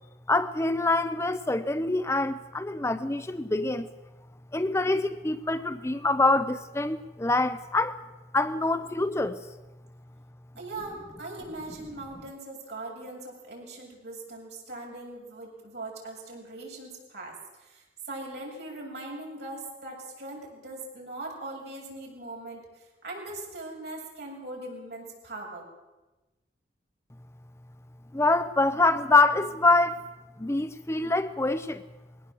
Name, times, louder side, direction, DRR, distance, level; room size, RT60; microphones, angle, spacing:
voice 1, 0.3-3.9 4.5-8.0 8.3-9.4 28.1-30.0 30.4-31.8, left 2 dB, 15° left, 0.6 m, -25 dB
voice 2, 10.6-25.7, right 2 dB, 65° right, 7.2 m, -40 dB
21.5 x 18.0 x 7.7 m
head